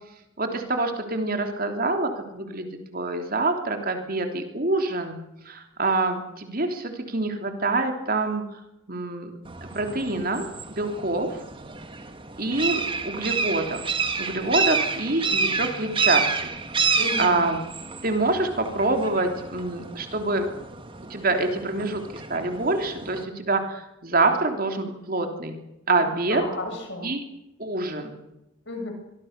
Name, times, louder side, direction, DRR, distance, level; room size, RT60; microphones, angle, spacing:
voice 1, 0.4-5.2 5.4-8.6 8.9-9.3 9.6-10.4 10.7-11.4 12.4-13.8 14.2-16.2 16.8-17.6 18.0-20.5 21.1-25.5 25.9-26.4 27.0-27.2 27.6-28.1, right 2 dB, 45° right, 5 dB, 3.2 m, -26 dB
sound 1, 9.5-23.2, right 5 dB, 25° right, 1.9 m, -29 dB
voice 2, 17.0-17.4 26.0-27.1 28.7-28.9, left 2 dB, 60° left, 3 dB, 7.5 m, -33 dB
24.5 x 23.5 x 6.7 m, 0.88 s
head